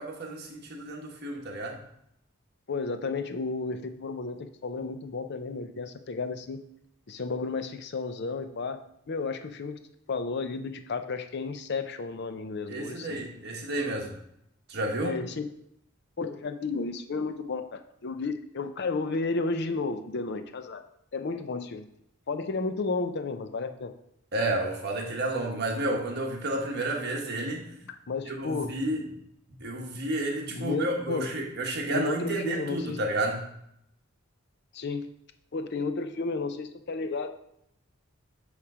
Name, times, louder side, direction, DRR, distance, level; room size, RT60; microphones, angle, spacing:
voice 1, 0.0-1.8 12.7-14.1 14.7-15.2 24.3-27.6 28.3-29.0 29.6-33.4, right 1 dB, 50° right, 0 dB, 1.3 m, -31 dB
voice 2, 2.7-6.6 7.1-8.8 9.1-9.8 10.1-13.2 15.0-15.5 16.2-20.8 21.1-21.9 22.3-23.9 27.9-28.7 30.5-31.3 31.9-33.0 34.7-35.1 35.5-37.3, left 4 dB, 55° left, 9 dB, 0.5 m, -32 dB
8.6 x 3.2 x 4.9 m, 0.75 s
head